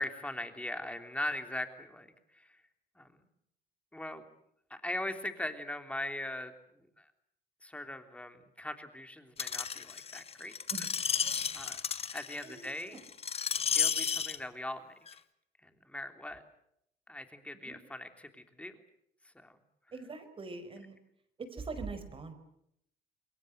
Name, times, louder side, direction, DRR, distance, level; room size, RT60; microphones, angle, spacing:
voice 1, 0.0-2.1 2.3-2.6 3.0-3.1 3.9-4.2 4.7-6.5 7.0-7.1 7.6-10.5 11.5-11.8 12.1-13.0 13.7-14.9 15.6-16.4 17.1-18.7 19.3-19.5, left 1 dB, 5° left, 7 dB, 3.3 m, -40 dB
Screech, 9.4-14.4 15.1-15.2, left 7 dB, 35° left, 1.5 m, -32 dB
voice 2, 12.4-13.0 17.6-17.7 19.9-21.0 21.4-22.3, right 4 dB, 30° right, 10 dB, 5.4 m, -43 dB
28.0 x 22.5 x 7.9 m, 0.75 s
cardioid pair, 110°, 17 cm